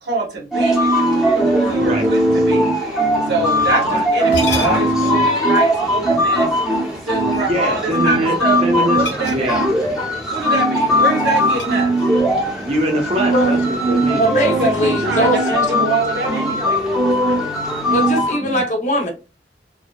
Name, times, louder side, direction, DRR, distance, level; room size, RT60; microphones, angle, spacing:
voice 1, 0.0-0.9 1.3-2.7 3.3-6.5 7.0-9.7 10.3-12.0 14.4-16.9, right 3 dB, 75° right, 0 dB, 0.9 m, -24 dB
sound 1, 0.5-18.4, equal, 5° right, 0.7 m, -19 dB
sound 2, 4.2-5.1 6.8-7.7 8.9-9.9 10.1-10.4 10.8-12.3, left 3 dB, 85° left, 0.7 m, -30 dB
voice 2, 7.5-8.4 8.6-9.0 9.3-9.6 12.6-14.2 18.4-18.6, equal, 35° right, 1 dB, 0.7 m, -22 dB
voice 3, 14.2-15.4 17.9-19.1, equal, 45° left, 3 dB, 0.6 m, -19 dB
2.6 x 2.2 x 2.2 m, 0.31 s
head